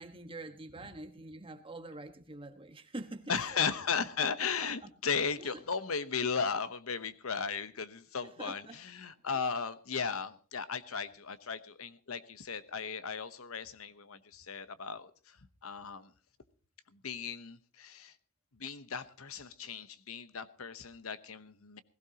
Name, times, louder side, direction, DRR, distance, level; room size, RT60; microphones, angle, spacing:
voice 1, 0.0-3.7 4.2-4.5 5.4-5.6 8.2-8.8 9.3-9.5, right 2 dB, 25° right, 1.4 m, -46 dB
voice 2, 3.3-15.4 15.6-16.1 16.9-18.1 18.6-21.8, left 6 dB, 80° left, 1.0 m, -36 dB
21.0 x 15.5 x 2.9 m
head